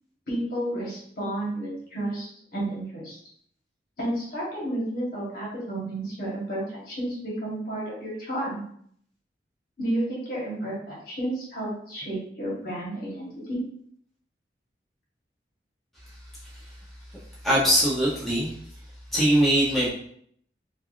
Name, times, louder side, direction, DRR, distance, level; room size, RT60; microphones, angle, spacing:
voice 1, 0.3-3.2 4.0-8.6 9.8-13.6, right 1 dB, 55° left, -6 dB, 1.2 m, -31 dB
voice 2, 17.4-18.5 19.1-19.9, equal, ahead, -9 dB, 0.7 m, -21 dB
3.3 x 2.4 x 2.5 m, 0.64 s
head